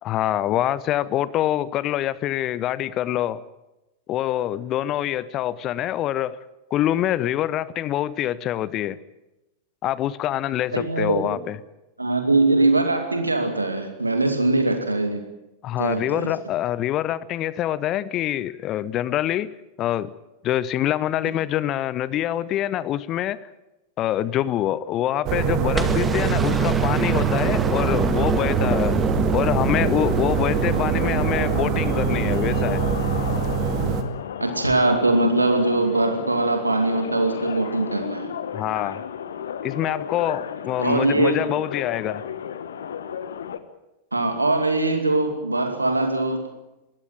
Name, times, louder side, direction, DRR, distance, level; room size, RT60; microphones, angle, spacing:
voice 1, 0.0-3.4 4.1-6.4 6.7-9.0 9.8-11.6 15.6-19.5 19.8-20.1 20.4-23.4 24.0-29.0 29.3-32.8 38.5-39.0 39.6-42.2, left 12 dB, 35° left, 20 dB, 0.8 m, -25 dB
voice 2, 10.7-11.4 12.0-15.2 15.8-16.3 34.4-38.4 40.8-41.5 44.1-46.5, right 2 dB, 80° right, 6 dB, 2.4 m, -22 dB
sound 1, 25.2-34.0, right 7 dB, 40° right, 2.4 m, -24 dB
sound 2, 25.7-31.9 33.5-33.6, right 3 dB, 15° right, 2.2 m, -26 dB
sound 3, 29.8-43.6, left 8 dB, 65° left, 1.3 m, -34 dB
22.0 x 17.0 x 9.1 m, 0.98 s
figure-of-eight pair, 90°, 0 cm